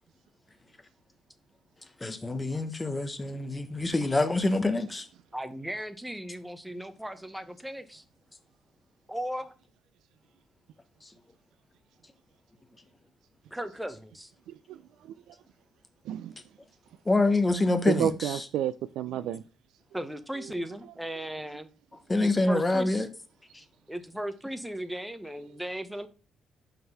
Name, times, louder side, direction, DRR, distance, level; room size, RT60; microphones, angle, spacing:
voice 1, 2.0-5.1 11.0-11.1 17.0-18.5 22.1-23.1 23.5-23.6, left 2 dB, 20° left, 1.0 m, -26 dB
voice 2, 5.3-8.0 9.1-9.5 13.5-14.3 19.9-21.7 22.2-23.0 23.9-26.1, right 1 dB, 5° right, 0.8 m, -37 dB
voice 3, 14.5-15.3 16.1-16.3 17.9-19.4, right 10 dB, 85° right, 0.3 m, -31 dB
5.6 x 3.8 x 5.6 m
cardioid pair, 90°, 0 cm